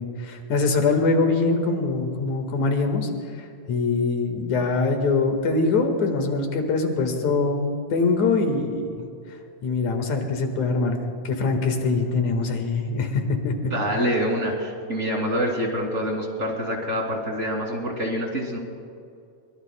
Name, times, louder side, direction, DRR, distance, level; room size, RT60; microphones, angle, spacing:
voice 1, 0.0-3.1 3.7-9.1 9.6-11.0 11.2-13.5, left 3 dB, 70° left, 4 dB, 2.9 m, -23 dB
voice 2, 13.6-18.6, equal, 25° right, 0 dB, 2.6 m, -26 dB
24.0 x 23.0 x 2.2 m, 2.5 s
omnidirectional pair, 3.5 m